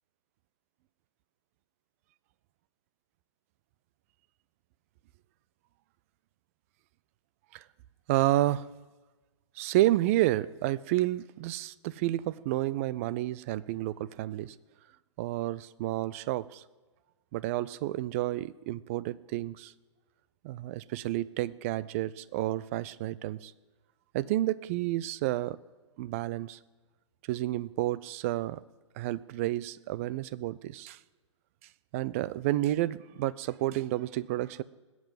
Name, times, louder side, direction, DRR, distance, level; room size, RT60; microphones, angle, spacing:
voice 1, 8.1-8.7 9.6-14.5 15.2-16.6 17.3-19.7 20.4-23.5 24.1-25.6 26.0-26.6 27.3-28.6 29.0-31.0 31.9-34.6, right 15 dB, 25° right, 19 dB, 0.4 m, -30 dB
20.0 x 8.6 x 7.5 m, 1.3 s
figure-of-eight pair, 120°, 16 cm